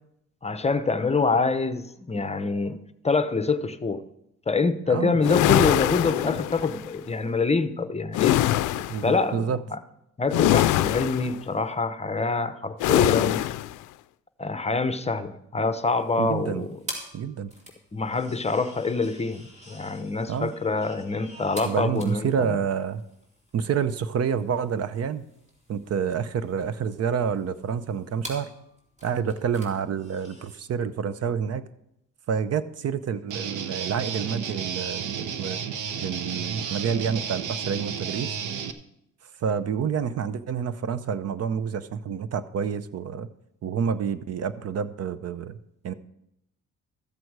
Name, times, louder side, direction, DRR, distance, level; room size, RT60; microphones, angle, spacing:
voice 1, 0.4-4.0 4.5-8.4 9.0-9.8 10.2-13.4 14.4-16.7 17.9-22.5, left 4 dB, 20° left, 0.7 m, -26 dB
voice 2, 4.9-5.2 8.9-9.6 16.2-16.7 17.1-17.5 20.3-20.5 21.6-23.0 23.5-25.2 25.7-28.5 29.0-31.7 32.3-35.6 36.0-38.4 39.4-43.3 43.6-45.6 45.8-45.9, right 7 dB, 55° right, 0.7 m, -28 dB
sound 1, 5.2-6.8 8.1-9.1 10.3-11.4 12.8-13.7, left 15 dB, 85° left, 0.4 m, -23 dB
sound 2, 15.9-30.6, equal, 25° right, 4.0 m, -46 dB
Guitar, 33.3-38.7, right 7 dB, 80° right, 0.9 m, -32 dB
13.5 x 7.8 x 4.7 m
cardioid pair, 90°, 30 cm